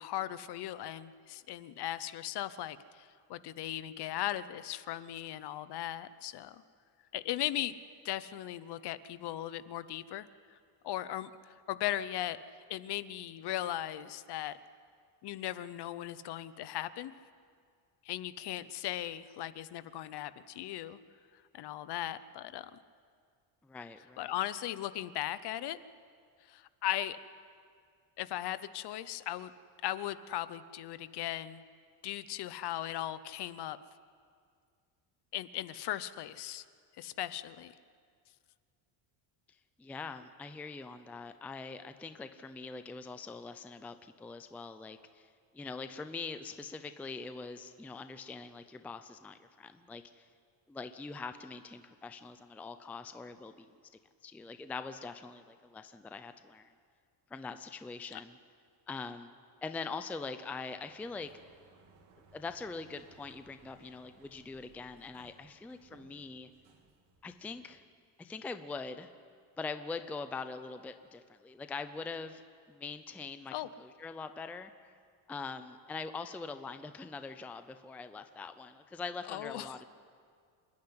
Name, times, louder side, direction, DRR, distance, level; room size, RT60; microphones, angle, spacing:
voice 1, 0.0-6.6 7.1-7.7 8.0-10.6 10.8-12.4 12.7-14.6 15.2-17.1 18.0-21.0 21.5-22.8 24.2-25.8 26.5-27.2 28.2-29.5 29.8-31.6 32.0-33.8 35.3-36.6 37.0-37.7 58.1-58.2 73.5-73.7 79.3-79.8, left 13 dB, 55° left, 15 dB, 0.8 m, -38 dB
voice 2, 23.6-24.3 39.8-45.3 45.5-50.3 50.7-53.7 54.2-56.7 57.3-58.4 58.9-59.3 59.6-61.3 62.3-66.5 67.2-67.8 68.2-69.1 69.6-72.4 72.7-74.7 75.3-79.8, left 4 dB, 5° left, 10 dB, 0.4 m, -43 dB
Sliding door, 60.6-67.7, right 4 dB, 60° right, 3.3 m, -63 dB
27.0 x 10.5 x 9.6 m, 2.1 s
cardioid pair, 155°, 49 cm